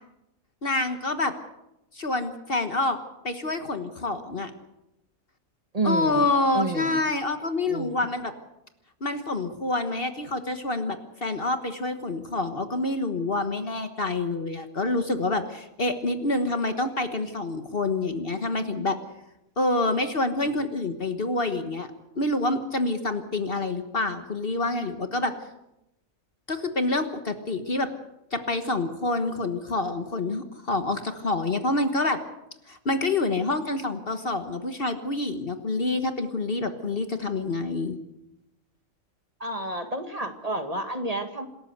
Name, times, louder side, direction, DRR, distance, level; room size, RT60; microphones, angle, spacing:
voice 1, 0.6-1.3 1.9-3.0 3.2-4.5 5.8-8.3 9.0-19.0 19.6-21.9 22.1-25.3 26.5-27.9 28.3-32.2 32.7-38.0, left 2 dB, 45° left, 8 dB, 1.5 m, -27 dB
voice 2, 5.7-6.3 6.5-7.0 7.7-8.0 39.4-41.5, right 2 dB, 25° right, 6 dB, 1.9 m, -30 dB
27.0 x 13.5 x 8.0 m, 0.90 s
omnidirectional pair, 1.5 m